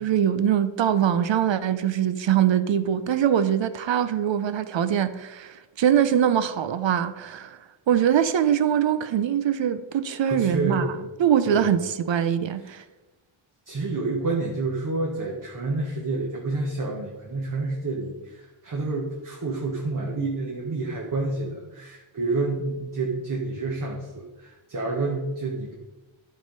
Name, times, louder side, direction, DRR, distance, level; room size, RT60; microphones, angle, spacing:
voice 1, 0.0-7.6 7.9-10.9 11.2-12.8, right 9 dB, 60° right, 0.7 m, -23 dB
voice 2, 10.3-11.0 11.5-11.7 12.6-12.8 13.7-25.7, right 3 dB, 40° right, 1.5 m, -29 dB
11.0 x 5.6 x 5.3 m
cardioid pair, 105°, 50 cm